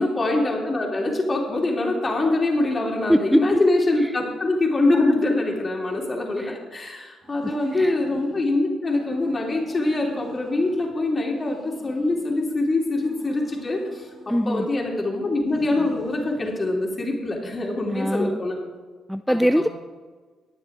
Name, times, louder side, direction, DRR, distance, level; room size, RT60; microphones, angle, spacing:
voice 1, 0.0-14.1 14.4-18.6 19.3-19.4, left 2 dB, 30° left, -1 dB, 3.3 m, -24 dB
voice 2, 3.1-3.6 4.0-4.2 6.4-6.6 7.4-8.0 14.3-14.7 17.9-18.4 19.1-19.7, equal, ahead, 10 dB, 0.3 m, -22 dB
sound 1, 7.2-8.5 8.9-10.9 11.3-12.6 13.0-14.9 15.4-16.6, right 2 dB, 35° right, 3.3 m, -44 dB
21.5 x 7.2 x 3.7 m, 1.5 s
cardioid pair, 90°, 0 cm